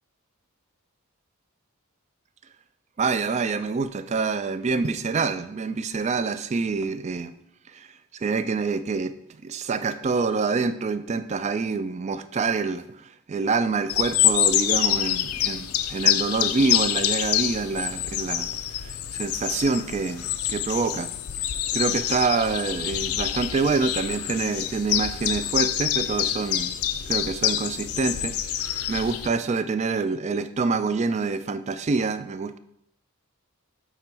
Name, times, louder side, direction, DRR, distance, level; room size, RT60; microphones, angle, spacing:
voice 1, 3.0-7.3 7.7-7.9 8.1-9.1 9.4-18.5 18.8-21.1 21.7-26.7 27.1-32.6, right 4 dB, 30° right, 12 dB, 0.3 m, -26 dB
sound 1, 13.9-29.3, left 11 dB, 75° left, 0.4 m, -26 dB
8.8 x 3.0 x 4.6 m, 0.74 s
head